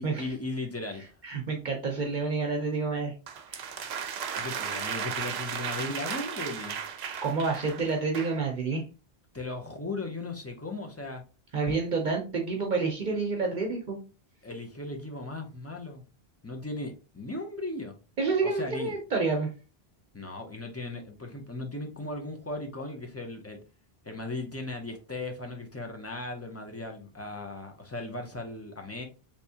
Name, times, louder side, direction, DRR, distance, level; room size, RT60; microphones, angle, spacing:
voice 1, 0.0-1.2 4.3-6.8 9.3-11.2 14.4-16.0 16.4-18.0 18.4-18.9 20.1-23.6 24.0-29.0, left 2 dB, 20° left, 3 dB, 0.5 m, -37 dB
voice 2, 1.2-3.1 3.5-3.8 7.2-8.8 11.5-14.0 18.2-19.5, right 4 dB, 50° right, 2 dB, 0.7 m, -29 dB
sound 1, 3.3-8.4, right 7 dB, 80° right, 0.8 m, -35 dB
3.4 x 2.9 x 2.7 m, 0.33 s
omnidirectional pair, 1.1 m